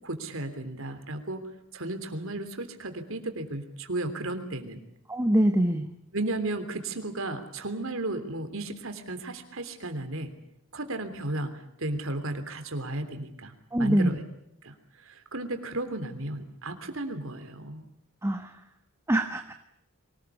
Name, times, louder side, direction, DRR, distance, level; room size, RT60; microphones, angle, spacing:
voice 1, 0.0-1.4 1.7-4.8 6.1-10.3 10.7-11.5 11.8-14.2 14.6-17.8, right 2 dB, 60° right, 8 dB, 3.2 m, -34 dB
voice 2, 5.1-5.8 13.7-14.2 18.2-18.5 19.1-19.5, right 1 dB, 10° right, 7 dB, 1.2 m, -24 dB
24.0 x 19.5 x 8.3 m, 0.79 s
head